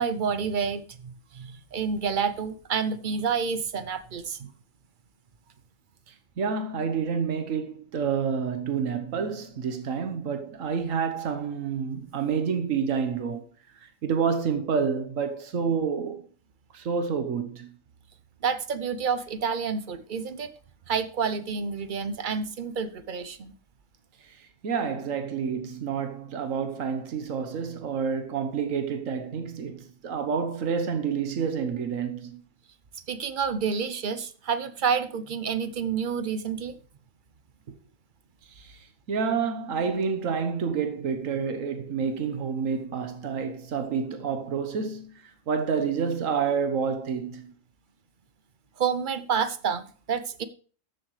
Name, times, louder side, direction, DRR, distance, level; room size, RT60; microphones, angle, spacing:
voice 1, 0.0-4.4 18.4-20.5 20.9-23.5 33.1-36.7 48.8-50.4, right 6 dB, 45° right, 0.8 m, -29 dB
voice 2, 6.1-13.5 13.8-16.3 16.7-17.7 24.2-32.3 38.6-47.4, right 6 dB, 85° right, 1.5 m, -29 dB
14.0 x 7.2 x 3.2 m
omnidirectional pair, 1.3 m